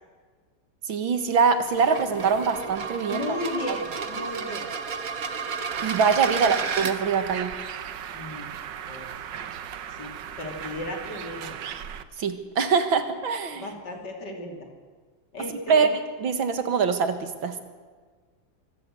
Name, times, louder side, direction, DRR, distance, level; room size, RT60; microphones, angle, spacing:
voice 1, 0.9-3.4 5.8-7.5 12.2-13.7 15.7-17.6, right 5 dB, 85° right, 9 dB, 2.5 m, -23 dB
sound 1, 1.6-6.9, right 5 dB, 50° right, 1.6 m, -32 dB
voice 2, 3.0-4.7 6.4-6.5 8.1-8.5 8.9-9.1 9.9-11.6 13.6-14.7 15.3-15.9, left 1 dB, 60° left, 3 dB, 3.7 m, -35 dB
Bird, 5.7-12.0, right 9 dB, 70° right, 1.7 m, -37 dB
24.0 x 17.0 x 7.9 m, 1.5 s
omnidirectional pair, 2.1 m